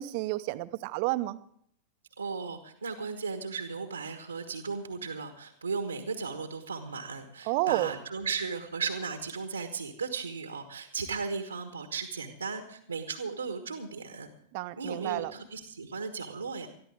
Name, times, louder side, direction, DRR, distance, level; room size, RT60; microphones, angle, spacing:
voice 1, 0.0-1.4 7.5-7.9 14.5-15.3, right 19 dB, 45° right, 13 dB, 0.8 m, -30 dB
voice 2, 2.2-14.3 14.8-16.7, right 5 dB, 75° right, 7 dB, 1.4 m, -36 dB
21.5 x 14.0 x 3.6 m, 0.63 s
figure-of-eight pair, 90°, 0 cm